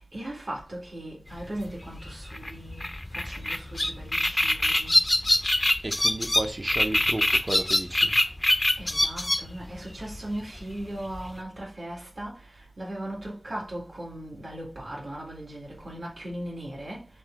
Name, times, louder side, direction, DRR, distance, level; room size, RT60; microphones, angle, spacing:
voice 1, 0.1-2.8 3.2-4.9 8.8-12.4 12.8-17.1, right 1 dB, 60° right, 2.0 m, -38 dB
sound 1, 1.3-11.4, left 1 dB, 30° left, 0.4 m, -25 dB
voice 2, 5.8-8.2, right 1 dB, 35° right, 0.7 m, -33 dB
6.1 x 2.2 x 3.6 m
wide cardioid pair, 45°, 0 cm